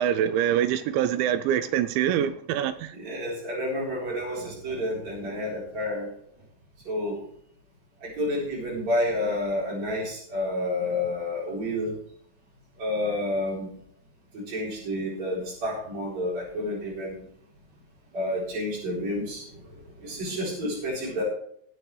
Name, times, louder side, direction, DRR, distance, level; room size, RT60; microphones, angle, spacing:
voice 1, 0.0-3.0, right 10 dB, 85° right, 2.7 m, -25 dB
voice 2, 3.0-6.1 6.8-7.2 8.0-11.9 12.8-13.7 14.3-17.2 18.1-19.5 20.0-21.2, left 1 dB, 35° right, 4.8 m, -29 dB
20.0 x 8.1 x 3.3 m
omnidirectional pair, 5.8 m